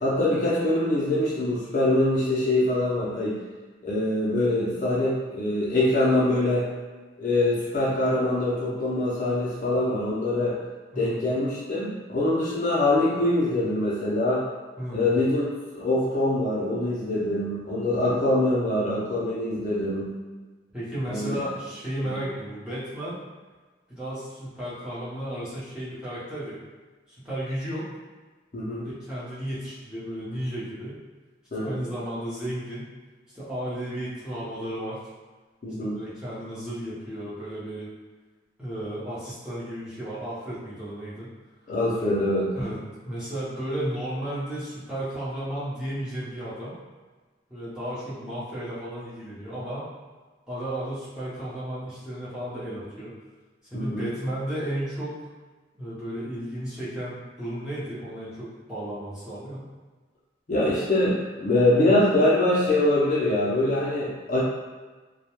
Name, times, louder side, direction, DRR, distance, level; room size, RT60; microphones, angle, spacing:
voice 1, 0.0-3.4 3.8-6.7 7.2-10.6 11.0-14.4 14.9-20.1 21.1-21.4 22.0-22.2 28.5-28.9 31.5-31.8 35.6-36.0 41.7-42.5 53.7-54.0 60.5-64.4, left 1 dB, 40° left, -6 dB, 0.5 m, -24 dB
voice 2, 14.8-15.1 20.7-23.2 23.9-26.6 27.1-27.9 28.8-31.0 31.5-32.9 33.3-35.0 35.8-37.9 38.6-41.3 42.5-42.8 43.0-46.8 47.5-49.9 50.5-53.1 53.7-55.2 55.8-59.7, right 1 dB, 5° right, -11 dB, 0.7 m, -33 dB
2.2 x 2.1 x 2.9 m, 1.3 s
head